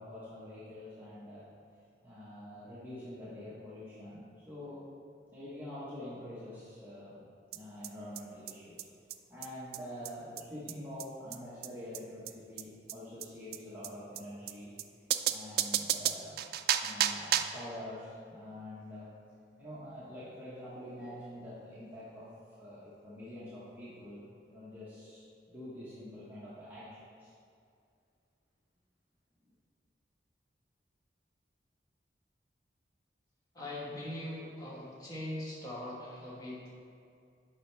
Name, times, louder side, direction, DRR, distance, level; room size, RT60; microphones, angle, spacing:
voice 1, 0.0-1.5 2.0-4.8 5.3-7.2 7.5-8.9 9.3-14.7 15.2-16.4 16.8-19.1 19.6-22.3 22.6-27.3 29.4-29.5, left 1 dB, 10° right, -10 dB, 1.1 m, -46 dB
sound 1, 7.5-7.6 7.8-7.9 8.2-8.3 8.5-8.6 8.8-8.9 9.1-9.2 9.4-9.5 9.7-9.8 10.0-10.1 10.4-10.5 10.7-10.8 11.0-11.1 11.3-11.4 11.6-11.7 11.9-12.0 12.3-12.4 12.6-12.7 12.9-13.0 13.2-13.3 13.5-13.6 13.8-13.9 14.2-14.3 14.5-14.6 14.8-14.9 15.1-17.6, right 11 dB, 60° right, 0.3 m, -32 dB
voice 2, 33.5-36.7, left 1 dB, 20° left, -6 dB, 1.2 m, -41 dB
8.5 x 5.5 x 3.3 m, 2.4 s
head